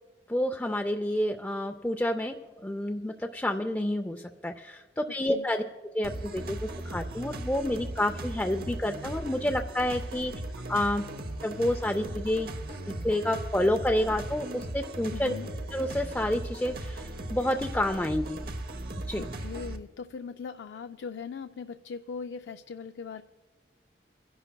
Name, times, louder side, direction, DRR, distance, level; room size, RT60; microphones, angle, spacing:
voice 1, 0.3-2.4 2.6-5.6 5.9-10.3 10.7-11.0 11.4-12.5 13.0-15.3 15.7-18.4 19.1-19.3, left 1 dB, 10° left, 3 dB, 0.4 m, -29 dB
voice 2, 5.1-5.5 15.1-15.5 19.2-23.2, left 5 dB, 80° left, 8 dB, 0.4 m, -40 dB
sound 1, 6.0-19.8, right 1 dB, 55° right, 0.8 m, -38 dB
29.5 x 11.0 x 2.2 m, 1.4 s
head